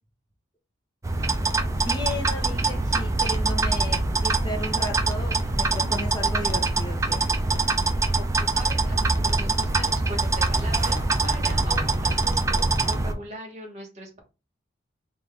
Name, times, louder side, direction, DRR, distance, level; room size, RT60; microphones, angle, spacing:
sound 1, 1.0-13.1, right 3 dB, 15° right, 0.3 m, -24 dB
voice 1, 1.7-7.4, left 1 dB, 20° left, 3 dB, 0.8 m, -34 dB
voice 2, 8.1-14.2, right 1 dB, 35° right, 0 dB, 1.2 m, -40 dB
3.9 x 2.5 x 3.3 m, 0.29 s
head